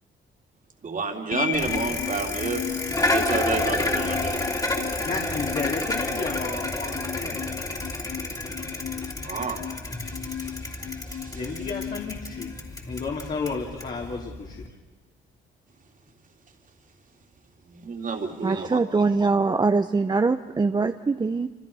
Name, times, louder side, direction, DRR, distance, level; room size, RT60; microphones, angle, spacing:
voice 1, 0.8-2.6 2.9-4.4 9.2-9.6 10.1-10.5 11.1-11.4 17.7-18.8, right 4 dB, 40° right, 3 dB, 3.3 m, -30 dB
sound 1, 1.3-13.4, left 10 dB, 65° left, 1.1 m, -36 dB
Bicycle, 1.5-14.7, left 2 dB, 20° left, 3.1 m, -30 dB
voice 2, 5.0-7.4 11.3-12.5 12.8-14.6, left 4 dB, 45° left, -2 dB, 3.2 m, -32 dB
voice 3, 18.4-21.5, right 4 dB, 20° right, 9 dB, 0.7 m, -23 dB
27.0 x 26.0 x 5.6 m, 1.3 s
cardioid pair, 90°, 20 cm